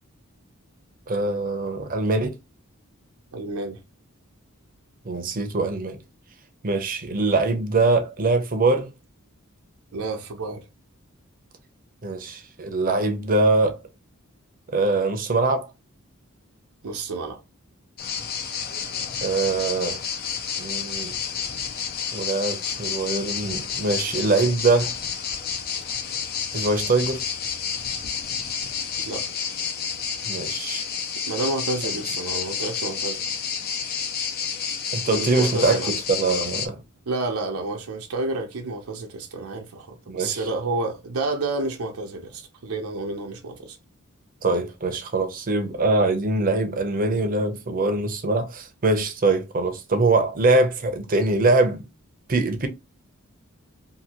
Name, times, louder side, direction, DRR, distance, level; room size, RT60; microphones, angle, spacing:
voice 1, 1.1-2.4 5.0-6.0 6.6-8.9 12.0-13.8 14.7-15.7 19.2-20.0 20.6-21.2 22.1-24.9 26.5-27.2 30.2-30.9 34.9-35.8 36.1-36.8 40.1-40.4 44.4-51.9 52.3-52.7, right 3 dB, 40° right, 0.6 m, -23 dB
voice 2, 3.3-3.8 9.9-10.6 16.8-17.4 29.0-29.3 31.3-33.2 35.2-35.9 37.1-43.8, right 2 dB, 80° right, 0.6 m, -30 dB
sound 1, 18.0-36.7, left 7 dB, 45° left, 0.4 m, -30 dB
2.7 x 2.7 x 2.8 m
head